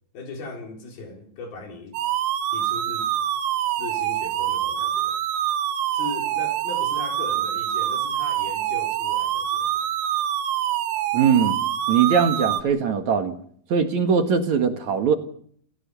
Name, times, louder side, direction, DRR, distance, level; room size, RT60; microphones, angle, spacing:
voice 1, 0.1-2.0 2.5-3.2 3.8-5.2 5.9-9.8, left 3 dB, 75° left, 3 dB, 6.0 m, -38 dB
sound 1, 1.9-12.6, right 11 dB, 80° right, 3.1 m, -25 dB
voice 2, 11.1-11.6 11.9-13.4 13.7-15.2, right 6 dB, 55° right, 6 dB, 2.7 m, -21 dB
30.0 x 15.5 x 7.0 m, 0.62 s
omnidirectional pair, 4.4 m